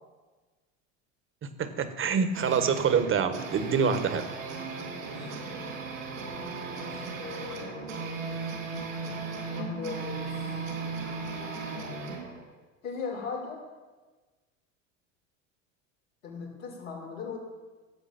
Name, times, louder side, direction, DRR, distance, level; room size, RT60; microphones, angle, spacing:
voice 1, 1.6-4.3, right 6 dB, 30° right, 9 dB, 1.5 m, -26 dB
sound 1, 2.3-12.4, right 4 dB, 85° right, 3.8 m, -36 dB
voice 2, 4.9-5.4 6.7-8.4 9.5-10.3 12.8-13.6 16.2-17.4, left 5 dB, 85° left, -4 dB, 4.5 m, -39 dB
16.0 x 8.0 x 6.0 m, 1.3 s
hypercardioid pair, 85°, 38 cm